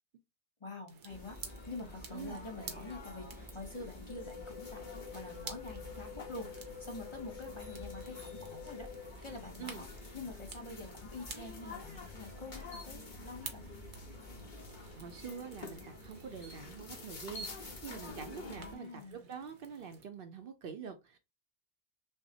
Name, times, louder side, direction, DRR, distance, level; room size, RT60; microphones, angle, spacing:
voice 1, 0.6-4.8 5.1-8.9 9.2-13.7 18.5-19.3, left 2 dB, 30° left, 0.7 m, -46 dB
sound 1, 0.9-20.0, right 5 dB, 85° right, 1.1 m, -53 dB
sound 2, 1.1-18.7, left 2 dB, 45° left, 1.1 m, -48 dB
sound 3, 4.1-9.1, left 7 dB, 65° left, 1.5 m, -48 dB
voice 2, 15.0-21.2, right 6 dB, 60° right, 0.7 m, -46 dB
5.7 x 2.0 x 2.7 m
omnidirectional pair, 1.1 m